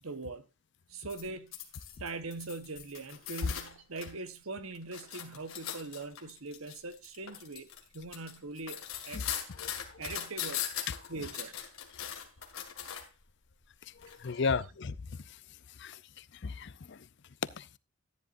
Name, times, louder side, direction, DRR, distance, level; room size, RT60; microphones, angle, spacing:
voice 1, 0.0-0.5 0.9-1.6 2.0-7.7 7.9-9.4 9.8-10.7 11.1-11.6 14.3-14.4, right 3 dB, 70° right, 1.1 m, -42 dB
sound 1, 1.1-4.1 4.5-13.2 14.0-14.1, left 10 dB, 70° left, 2.0 m, -40 dB
voice 2, 14.2-14.9 15.8-16.0 16.4-17.0 17.6-17.8, left 4 dB, 50° left, 0.5 m, -34 dB
14.0 x 10.0 x 2.6 m
head